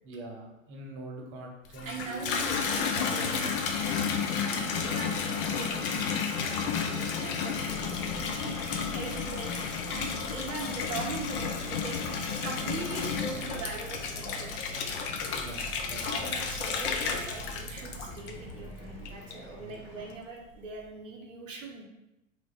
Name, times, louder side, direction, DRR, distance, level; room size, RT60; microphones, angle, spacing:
voice 1, 0.0-3.5 15.3-16.3 19.6-19.8, right 1 dB, 35° right, 1 dB, 0.7 m, -44 dB
Water tap faucet / Bathtub (filling or washing), 1.6-18.6 19.0-19.6, left 6 dB, 45° left, 0.5 m, -32 dB
voice 2, 1.8-3.8 4.8-14.5 16.0-21.8, right 3 dB, 75° right, 0 dB, 0.7 m, -41 dB
sound 1, 2.2-20.2, left 1 dB, 80° left, 1.3 m, -49 dB
sound 2, 7.5-19.2, right 1 dB, 25° left, 1.0 m, -45 dB
3.3 x 2.4 x 3.2 m, 0.93 s
figure-of-eight pair, 95°, 39 cm